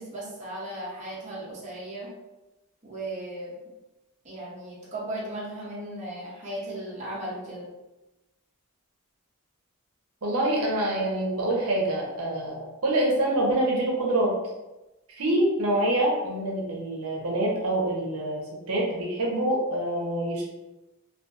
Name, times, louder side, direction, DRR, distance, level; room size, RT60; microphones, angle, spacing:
voice 1, 0.0-2.1 2.8-3.6 4.2-7.7, right 1 dB, 30° right, -6 dB, 0.6 m, -36 dB
voice 2, 10.2-14.3 15.1-18.4 18.7-20.5, right 1 dB, 75° right, -2 dB, 0.7 m, -26 dB
2.7 x 2.4 x 2.3 m, 1.0 s
head